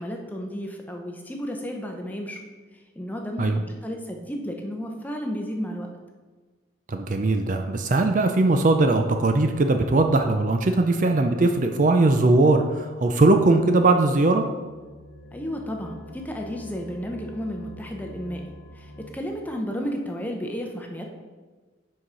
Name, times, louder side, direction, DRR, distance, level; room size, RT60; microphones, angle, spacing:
voice 1, 0.0-2.4 3.0-5.9 15.3-18.4 18.7-21.1, equal, 10° left, 2 dB, 0.7 m, -32 dB
voice 2, 6.9-14.5, right 2 dB, 40° right, 6 dB, 0.4 m, -20 dB
sound 1, 14.5-19.6, equal, 45° left, 0.8 m, -45 dB
6.2 x 4.7 x 5.6 m, 1.4 s
head